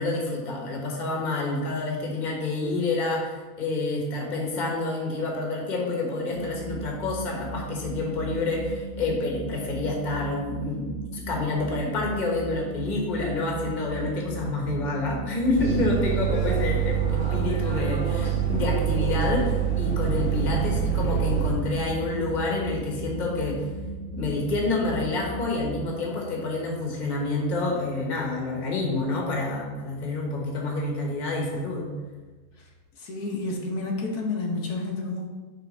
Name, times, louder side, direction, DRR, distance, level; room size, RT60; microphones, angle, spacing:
voice 1, 0.0-23.7 24.1-31.9, left 2 dB, 35° left, -1 dB, 1.2 m, -28 dB
sound 1, 6.3-25.8, right 3 dB, 45° right, 0.7 m, -37 dB
sound 2, 15.5-21.5, right 10 dB, 30° right, 1.9 m, -26 dB
voice 2, 20.2-20.5 33.0-35.3, left 3 dB, 80° left, 0 dB, 1.5 m, -30 dB
sound 3, 20.5-32.9, right 3 dB, 70° right, 1.1 m, -42 dB
5.5 x 3.7 x 5.2 m, 1.3 s
omnidirectional pair, 1.6 m